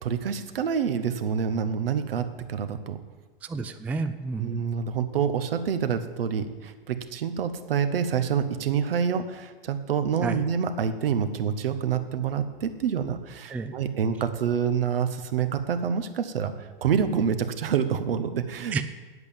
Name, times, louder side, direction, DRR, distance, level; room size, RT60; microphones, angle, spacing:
voice 1, 0.0-3.0 4.4-18.8, right 7 dB, 75° right, 10 dB, 1.1 m, -27 dB
voice 2, 3.4-4.6 10.2-10.4 13.5-13.7 18.7-18.8, right 4 dB, 5° right, 8 dB, 0.3 m, -30 dB
9.0 x 8.1 x 7.0 m, 1.4 s
hypercardioid pair, 105°, 29 cm